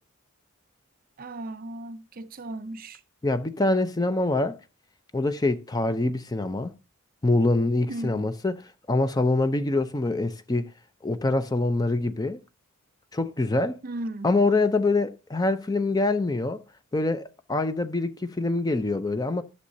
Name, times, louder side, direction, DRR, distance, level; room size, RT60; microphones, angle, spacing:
voice 1, 1.2-3.0 7.9-8.3 13.8-14.3, right 1 dB, 45° right, 0.5 m, -36 dB
voice 2, 3.2-4.6 5.1-6.7 7.2-10.7 11.0-12.4 13.1-13.8 14.2-16.6 16.9-19.4, left 2 dB, 20° left, 0.5 m, -25 dB
11.5 x 6.5 x 2.7 m
head